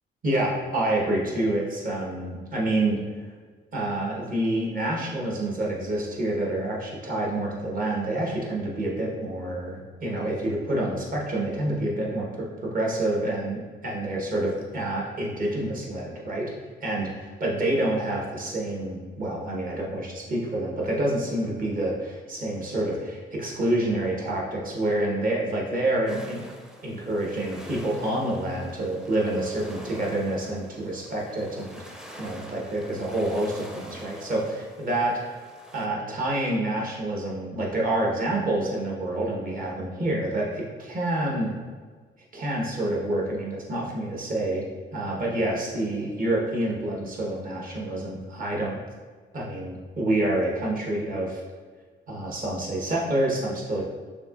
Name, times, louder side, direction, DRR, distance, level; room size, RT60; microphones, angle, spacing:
voice 1, 0.2-3.0 3.7-16.5 16.8-17.1 17.4-26.4 26.8-31.8 32.2-35.4 35.7-41.5 42.3-44.6 44.9-48.8 49.3-51.4 52.1-53.8, right 1 dB, 45° right, -3 dB, 1.2 m, -27 dB
sound 1, 26.1-35.9, equal, 5° right, 0.5 m, -46 dB
6.5 x 2.8 x 2.5 m, 1.5 s
cardioid pair, 90°, 20 cm